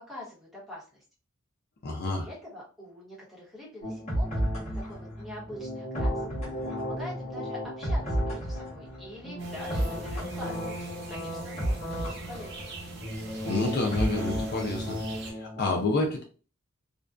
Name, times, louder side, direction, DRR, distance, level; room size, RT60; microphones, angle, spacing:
voice 1, 0.1-1.0 2.0-6.2 6.8-12.7, left 1 dB, ahead, -5 dB, 1.0 m, -45 dB
voice 2, 1.8-2.3 13.4-15.0 15.3-16.2, left 2 dB, 50° left, 1 dB, 0.4 m, -28 dB
sound 1, 3.8-15.6, equal, 35° left, 1.1 m, -32 dB
sound 2, 9.4-15.3, right 2 dB, 60° right, 0.7 m, -43 dB
2.5 x 2.2 x 2.3 m, 0.36 s
head